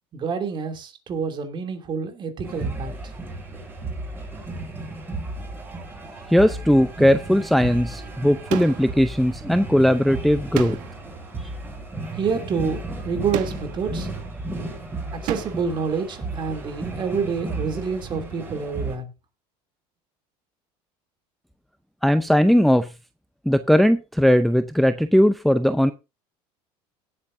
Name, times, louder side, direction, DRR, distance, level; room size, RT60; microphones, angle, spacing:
voice 1, 0.1-3.1 12.2-14.1 15.1-19.1, right 5 dB, 35° right, 6 dB, 2.9 m, -28 dB
sound 1, 2.4-19.0, right 2 dB, 15° right, 7.5 m, -34 dB
voice 2, 6.3-10.8 22.0-22.9 23.5-25.9, equal, ahead, 10 dB, 0.6 m, -18 dB
sound 2, 8.5-9.1 10.5-11.1 13.3-13.9 15.3-15.7, right 13 dB, 70° right, 1.4 m, -31 dB
17.5 x 8.4 x 2.7 m, 0.27 s
cardioid pair, 135°, 14 cm